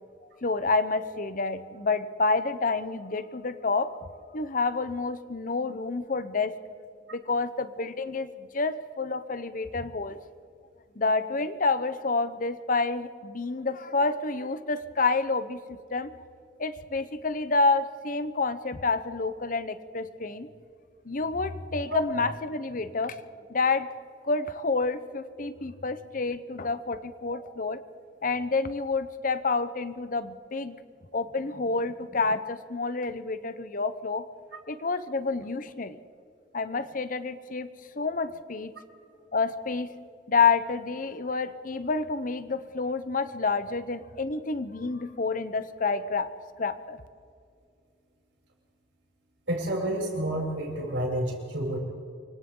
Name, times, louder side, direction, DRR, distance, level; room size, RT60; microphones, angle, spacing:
voice 1, 0.4-3.9 4.3-6.5 7.1-10.2 11.0-16.1 16.6-20.5 21.0-23.2 23.5-23.9 24.2-27.8 28.2-30.8 31.1-34.2 34.7-36.0 36.5-38.7 39.3-39.9 40.3-46.3 46.6-47.0, left 4 dB, 45° left, 12 dB, 0.9 m, -28 dB
voice 2, 49.5-51.8, right 1 dB, 80° right, -2 dB, 6.9 m, -29 dB
28.5 x 24.5 x 3.9 m, 2.4 s
head